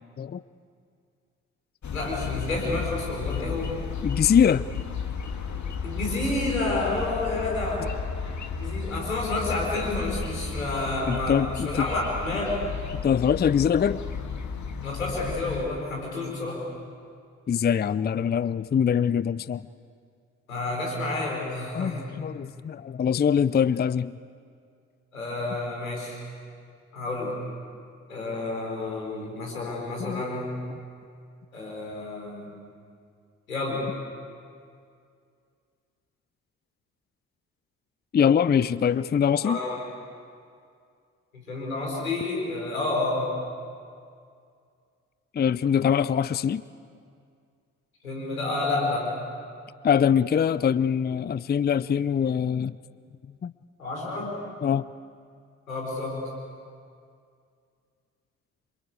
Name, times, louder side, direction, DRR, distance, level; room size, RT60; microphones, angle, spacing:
sound 1, 1.8-15.7, left 5 dB, 45° left, 2.2 m, -33 dB
voice 1, 1.9-3.8 5.8-7.9 8.6-12.6 14.8-16.6 20.5-22.0 25.1-26.2 26.9-27.3 28.1-30.6 31.5-32.5 33.5-33.8 39.4-39.8 41.3-43.3 48.0-49.1 53.8-54.3 55.7-56.2, left 2 dB, 90° left, -1 dB, 4.3 m, -30 dB
voice 2, 4.0-4.6 11.1-11.9 13.0-14.0 17.5-19.6 21.7-24.2 30.0-30.2 38.1-39.6 45.3-46.6 49.8-52.8 53.4-53.5 54.6-54.8, left 8 dB, 25° left, 17 dB, 0.6 m, -23 dB
27.0 x 23.0 x 8.2 m, 2.3 s
figure-of-eight pair, 40°, 40 cm